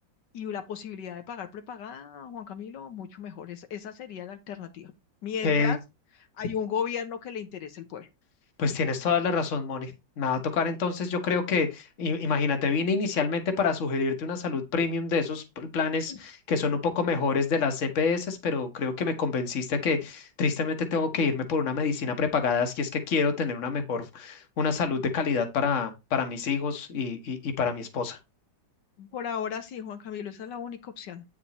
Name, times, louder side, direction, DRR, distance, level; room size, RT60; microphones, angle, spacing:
voice 1, 0.3-4.9 5.2-5.8 6.4-8.1 16.1-16.2 29.0-31.2, left 7 dB, 85° left, 1.6 m, -35 dB
voice 2, 5.4-5.7 8.6-28.2, left 5 dB, 50° left, 1.5 m, -27 dB
8.7 x 4.9 x 4.1 m
omnidirectional pair, 1.8 m